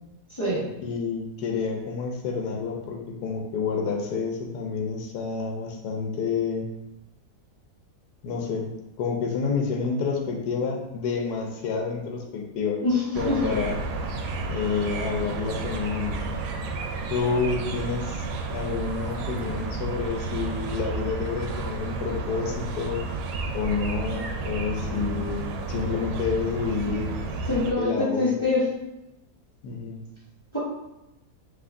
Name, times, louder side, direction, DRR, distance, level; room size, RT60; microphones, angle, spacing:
voice 1, 0.8-6.7 8.2-8.7 9.0-12.8 13.2-13.7 14.5-16.4 17.1-18.2 18.5-23.0 23.5-27.1 27.8-28.3 29.6-30.0, left 5 dB, 80° left, 0 dB, 1.2 m, -29 dB
voice 2, 12.8-13.4 27.5-28.6, left 2 dB, 20° left, -9 dB, 1.0 m, -24 dB
sound 1, 13.1-27.7, right 3 dB, 90° right, 1.1 m, -31 dB
5.7 x 3.0 x 2.6 m, 0.94 s
omnidirectional pair, 1.7 m